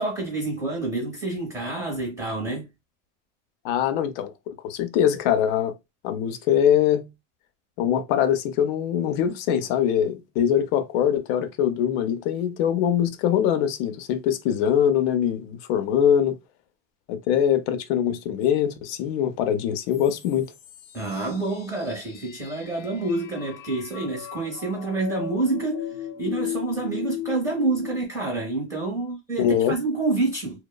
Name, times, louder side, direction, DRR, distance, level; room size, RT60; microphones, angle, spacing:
voice 1, 0.0-2.7 20.9-25.9 26.2-30.6, right 3 dB, 10° right, 0.6 m, -28 dB
voice 2, 3.6-5.7 6.0-7.1 7.8-16.4 17.1-20.5 29.4-29.8, left 9 dB, 55° left, 0.5 m, -23 dB
sound 1, 19.9-28.0, left 11 dB, 80° left, 0.8 m, -37 dB
2.9 x 2.1 x 2.2 m
supercardioid pair, 160°, 36 cm